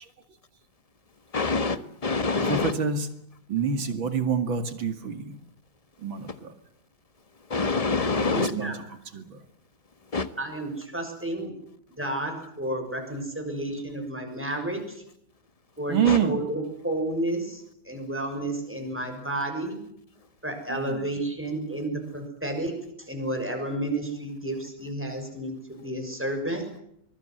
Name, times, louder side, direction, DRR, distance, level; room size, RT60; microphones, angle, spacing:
voice 1, 1.3-2.7 7.5-8.5 10.1-10.3 16.1-16.2, left 4 dB, 20° left, 12 dB, 1.2 m, -25 dB
voice 2, 2.4-3.1 3.5-5.4 6.0-6.5 8.2-9.4 15.9-16.4 20.7-21.1, right 6 dB, 75° right, 9 dB, 3.0 m, -27 dB
voice 3, 8.0-8.8 10.4-11.5 12.0-15.0 15.8-19.8 20.4-22.7 23.0-26.7, right 1 dB, 5° right, 4 dB, 6.4 m, -31 dB
24.5 x 22.5 x 7.8 m, 0.72 s
omnidirectional pair, 2.1 m